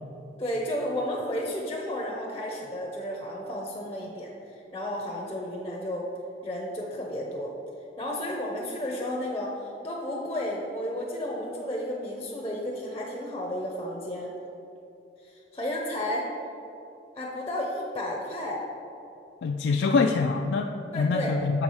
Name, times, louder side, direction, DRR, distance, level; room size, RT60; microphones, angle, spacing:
voice 1, 0.4-6.1 6.4-7.5 8.0-14.3 15.2-16.3 17.2-18.6 20.9-21.4, left 1 dB, 15° left, -2 dB, 0.7 m, -32 dB
voice 2, 19.4-21.6, left 4 dB, 80° left, 4 dB, 0.3 m, -25 dB
6.9 x 4.7 x 5.5 m, 2.8 s
head